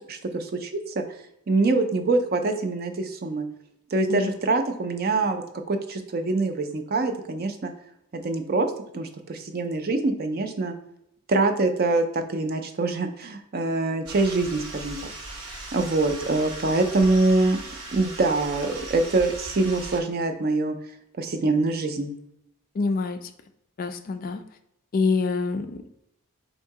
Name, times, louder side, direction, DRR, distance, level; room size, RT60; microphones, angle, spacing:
voice 1, 0.1-1.0 1.5-3.5 3.9-7.7 8.1-8.7 8.9-10.7 11.3-15.0 15.7-17.6 17.9-20.8 21.2-22.1, right 3 dB, 45° right, 7 dB, 0.4 m, -24 dB
sound 1, 14.1-20.0, right 2 dB, 80° right, 0.9 m, -38 dB
voice 2, 22.7-23.3 23.8-24.4 24.9-25.9, left 4 dB, 40° left, 9 dB, 0.3 m, -26 dB
3.7 x 2.7 x 4.6 m, 0.78 s
head